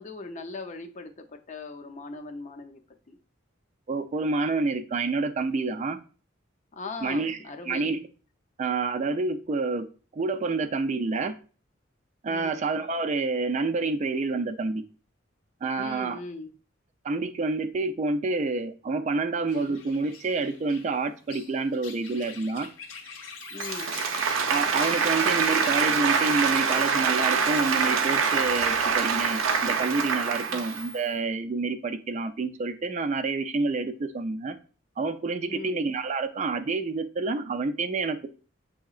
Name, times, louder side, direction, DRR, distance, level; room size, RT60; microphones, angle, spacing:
voice 1, 0.0-2.8 3.1-3.2 6.7-7.9 12.3-12.6 15.8-16.5 19.7-19.8 23.5-24.0 30.5-30.6 35.5-35.8, left 3 dB, 40° left, 0.5 m, -39 dB
voice 2, 3.9-6.0 7.0-7.4 7.7-8.0 8.6-9.9 10.1-11.3 12.2-14.8 15.6-16.2 17.0-22.7 24.5-34.6 35.0-38.3, right 3 dB, 35° right, 0.3 m, -28 dB
sound 1, 19.5-26.8, left 5 dB, 75° left, 0.8 m, -43 dB
Applause, 23.5-30.9, right 5 dB, 85° right, 0.5 m, -25 dB
7.1 x 2.8 x 2.4 m
head